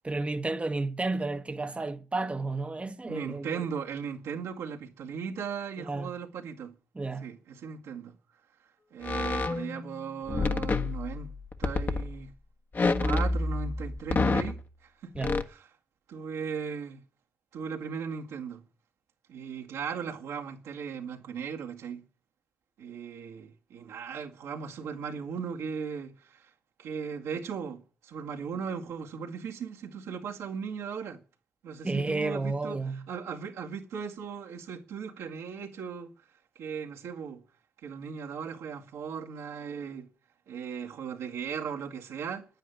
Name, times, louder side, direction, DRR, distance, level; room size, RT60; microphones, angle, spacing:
voice 1, 0.0-3.6 5.8-6.1 6.9-7.3 15.1-15.4 31.8-33.0, right 3 dB, 25° right, 1.1 m, -32 dB
voice 2, 3.1-6.8 7.2-8.2 8.9-11.3 11.6-12.3 13.0-15.1 15.5-15.6 16.1-17.0 17.5-18.6 19.3-22.1 22.8-26.5 26.8-31.2 31.6-32.8 33.1-36.1 36.6-37.4 37.8-40.1 40.5-42.5, right 6 dB, 80° right, 2.1 m, -37 dB
sound 1, 9.0-9.9 10.3-12.1 12.7-14.6 15.2-15.4, left 3 dB, 45° left, 1.5 m, -28 dB
10.0 x 9.1 x 9.8 m
hypercardioid pair, 45°, 5 cm